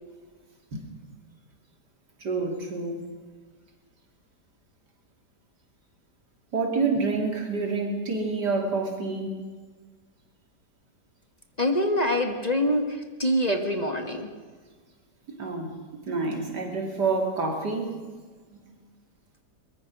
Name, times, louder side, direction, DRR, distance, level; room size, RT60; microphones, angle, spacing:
voice 1, 2.2-3.0 6.5-9.4 15.3-15.7 16.0-17.9, right 3 dB, 75° right, 3 dB, 3.5 m, -28 dB
voice 2, 11.6-14.3, equal, 25° left, 5 dB, 1.7 m, -25 dB
23.0 x 21.5 x 6.2 m, 1.5 s
omnidirectional pair, 1.8 m